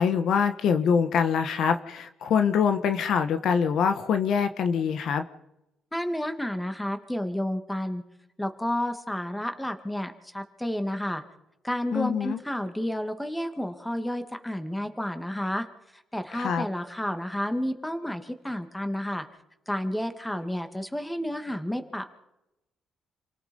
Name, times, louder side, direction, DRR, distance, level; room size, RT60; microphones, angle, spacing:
voice 1, 0.0-5.2 11.9-12.4 16.3-16.6, left 6 dB, 70° left, 9 dB, 1.3 m, -24 dB
voice 2, 5.9-8.0 8.4-11.2 11.6-15.7 16.1-19.3 19.7-22.1, left 1 dB, 5° left, 7 dB, 2.2 m, -31 dB
28.0 x 18.0 x 5.5 m, 0.92 s
cardioid pair, 90°, 0 cm